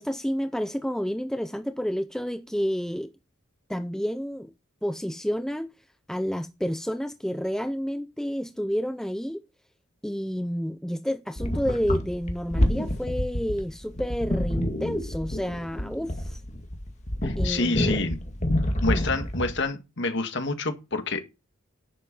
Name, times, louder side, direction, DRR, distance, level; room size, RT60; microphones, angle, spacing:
voice 1, 0.0-3.1 3.7-4.5 4.8-5.7 6.1-9.4 10.0-16.4 17.4-17.8 18.9-19.0, equal, ahead, 0.5 m, -30 dB
sound 1, 11.4-19.6, left 1 dB, 35° left, 2.1 m, -28 dB
voice 2, 17.2-18.2 18.8-21.2, left 3 dB, 55° left, 1.8 m, -28 dB
11.0 x 7.9 x 5.4 m
head